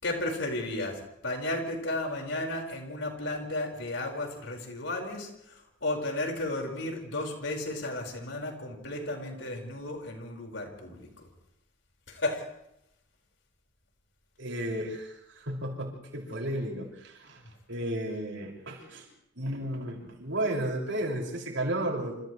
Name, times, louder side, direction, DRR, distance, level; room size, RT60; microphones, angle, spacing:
voice 1, 0.0-11.3 12.1-12.4, left 2 dB, 80° left, 1 dB, 5.6 m, -34 dB
voice 2, 14.4-17.4 17.7-19.0 19.3-22.2, right 1 dB, 85° right, -1 dB, 6.5 m, -33 dB
29.0 x 28.5 x 3.4 m, 0.81 s
head